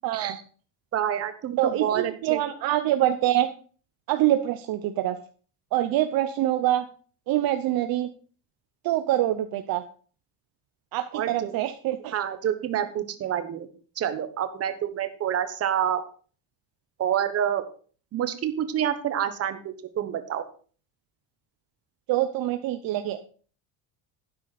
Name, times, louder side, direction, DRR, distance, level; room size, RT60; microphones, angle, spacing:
voice 1, 0.0-0.4 1.6-3.5 4.1-5.2 5.7-6.8 7.3-8.1 8.8-9.8 10.9-12.2 22.1-23.2, right 13 dB, 50° right, 8 dB, 0.8 m, -25 dB
voice 2, 0.9-2.4 11.1-11.5 12.1-13.7 14.0-16.0 17.0-17.6 18.1-20.4, right 9 dB, 30° right, 10 dB, 1.2 m, -28 dB
12.0 x 9.6 x 4.2 m, 0.40 s
cardioid pair, 165°, 45 cm